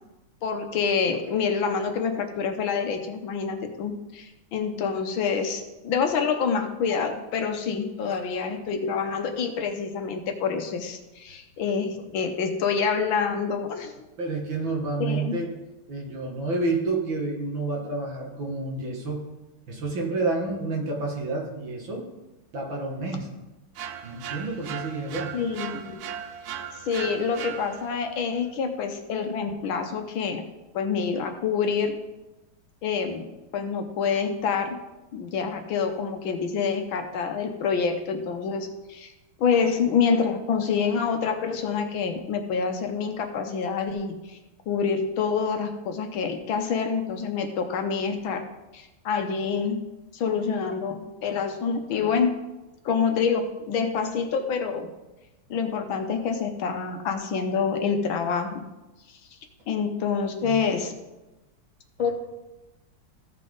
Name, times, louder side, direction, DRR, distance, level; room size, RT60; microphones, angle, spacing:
voice 1, 0.4-13.9 15.0-15.4 25.3-26.0 26.8-30.4 30.7-31.9 32.8-34.8 35.1-39.1 39.4-44.4 44.7-48.4 48.7-49.8 50.1-52.3 52.8-54.9 55.5-58.6 59.7-60.9 62.0-62.1, left 6 dB, 70° left, 5 dB, 1.6 m, -27 dB
voice 2, 14.2-15.5 15.9-19.2 19.7-22.1 22.5-23.3 24.0-25.3 60.4-60.6, right 3 dB, 65° right, -1 dB, 2.5 m, -29 dB
sound 1, 23.8-28.1, right 8 dB, 85° right, 0.8 m, -37 dB
15.0 x 5.7 x 3.9 m, 1.0 s
omnidirectional pair, 2.4 m